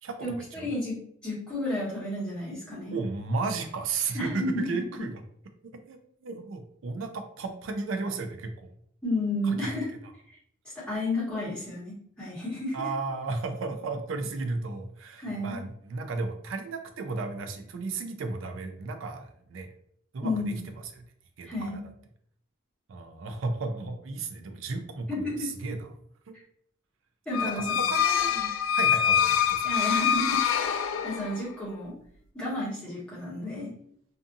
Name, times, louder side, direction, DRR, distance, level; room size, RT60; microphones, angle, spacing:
voice 1, 0.0-0.7 2.9-5.1 5.9-8.7 9.4-9.7 12.7-19.7 20.1-20.5 20.9-21.0 21.4-21.8 22.9-25.9 26.3-26.4 27.4-28.3 28.7-29.7, right 3 dB, 70° right, 6 dB, 0.4 m, -34 dB
voice 2, 0.6-3.0 4.1-4.6 9.0-9.9 10.3-10.4 10.7-12.8 15.2-15.6 20.2-20.6 21.4-21.8 25.1-25.5 27.3-27.9 28.3-28.5 29.6-31.9 32.3-33.7, left 1 dB, 5° left, -9 dB, 1.1 m, -32 dB
sound 1, 27.3-31.5, left 8 dB, 75° left, 0.3 m, -25 dB
2.5 x 2.5 x 2.5 m, 0.65 s
head